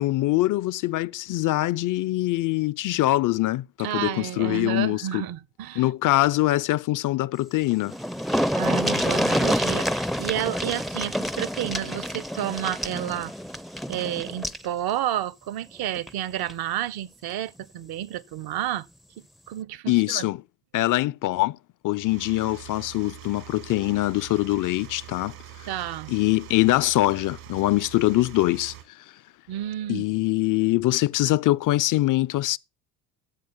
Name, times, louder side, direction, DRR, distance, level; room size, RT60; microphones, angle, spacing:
voice 1, 0.0-5.2 5.8-7.9 19.9-20.4 20.7-21.6 21.8-25.3 26.1-28.7 29.9-32.6, left 17 dB, 45° left, 0.6 m, -23 dB
voice 2, 3.8-5.9 8.5-13.3 13.9-18.9 19.5-20.3 25.7-26.1 29.5-30.0, right 12 dB, 55° right, 1.0 m, -30 dB
sound 1, 7.5-7.6 7.8-14.7 16.0-16.1 16.5-16.6, equal, ahead, 0.5 m, -27 dB
sound 2, 22.0-28.8, right 13 dB, 75° right, 3.4 m, -44 dB
13.5 x 7.8 x 5.5 m
hypercardioid pair, 60°, 44 cm